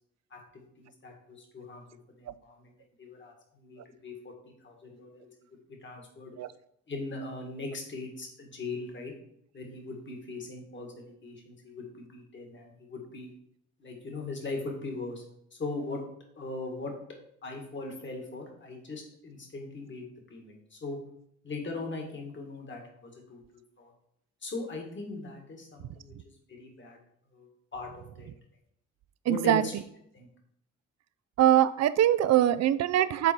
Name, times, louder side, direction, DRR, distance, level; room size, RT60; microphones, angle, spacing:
voice 1, 0.3-1.8 2.2-2.7 3.0-4.3 4.6-5.3 5.8-6.4 6.9-9.1 9.5-13.3 13.8-15.2 15.5-16.0 16.4-16.9 17.4-21.0 21.4-23.4 23.8-23.9 24.4-26.1 26.5-27.0 27.3-28.4 29.3-29.7 30.1-30.3, left 3 dB, 40° left, 2 dB, 1.9 m, -40 dB
voice 2, 29.3-29.6 31.4-33.3, right 12 dB, 60° right, 14 dB, 0.5 m, -23 dB
6.9 x 4.1 x 4.5 m, 0.70 s
cardioid pair, 90°, 30 cm